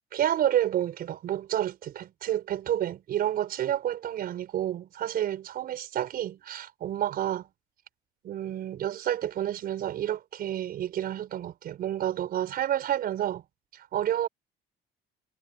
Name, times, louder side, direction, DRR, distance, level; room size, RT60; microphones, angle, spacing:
voice 1, 0.1-7.5 8.2-13.4 13.9-14.3, right 11 dB, 60° right, 5.4 m, -29 dB
cardioid pair, 110°, 17 cm